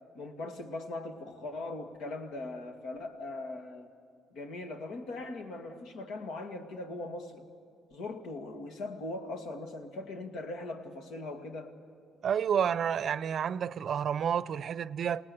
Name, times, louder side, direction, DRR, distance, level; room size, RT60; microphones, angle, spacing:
voice 1, 0.1-3.9 4.3-7.5 7.9-11.7, left 2 dB, 80° left, 2.2 m, -40 dB
voice 2, 12.2-15.2, right 8 dB, 50° right, 0.5 m, -30 dB
29.0 x 18.5 x 7.1 m
cardioid pair, 130°, 0 cm